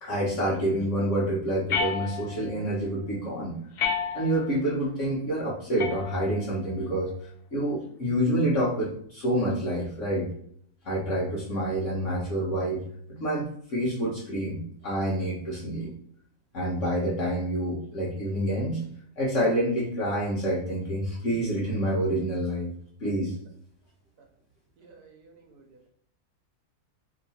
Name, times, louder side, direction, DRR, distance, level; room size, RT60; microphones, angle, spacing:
voice 1, 0.0-3.5 4.1-10.3 10.8-12.8 13.1-15.9 16.5-18.8 19.2-22.7 23.0-23.3, right 1 dB, 55° left, -5 dB, 1.3 m, -28 dB
sound 1, 1.7-2.6 3.8-4.6 5.8-6.6, left 6 dB, 85° left, 0.5 m, -31 dB
voice 2, 24.8-25.9, right 4 dB, 80° right, 2 dB, 1.3 m, -54 dB
3.0 x 2.9 x 4.1 m, 0.64 s
omnidirectional pair, 1.7 m